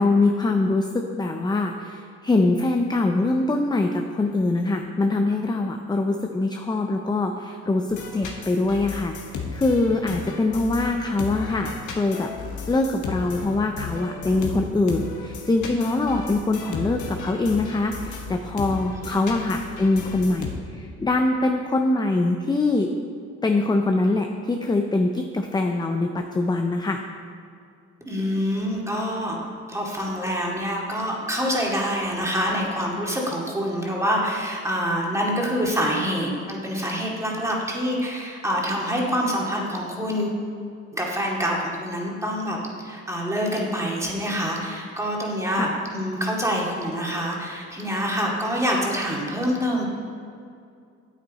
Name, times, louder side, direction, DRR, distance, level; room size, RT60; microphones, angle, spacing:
voice 1, 0.0-9.2 9.5-12.3 12.7-23.0 23.4-27.0 45.5-45.7, left 2 dB, 15° left, 4 dB, 0.5 m, -23 dB
sound 1, 7.9-20.5, left 5 dB, 80° left, 1.3 m, -34 dB
voice 2, 28.0-29.4 29.7-40.4 40.9-42.6 42.8-49.8, equal, 10° right, -3 dB, 2.2 m, -26 dB
9.2 x 8.6 x 4.1 m, 2.4 s
cardioid pair, 90°, 30 cm